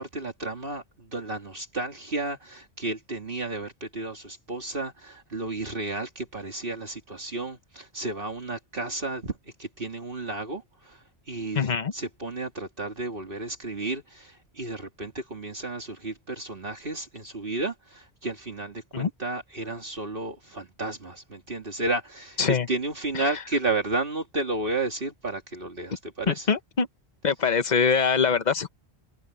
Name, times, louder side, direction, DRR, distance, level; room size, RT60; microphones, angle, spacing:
voice 1, 0.0-9.3 9.6-26.5, right 2 dB, 55° right, 2.7 m, -32 dB
voice 2, 11.5-11.9 18.9-19.1 22.4-22.7 26.3-26.9 27.2-28.7, left 6 dB, 40° left, 1.1 m, -23 dB
omnidirectional pair, 1.1 m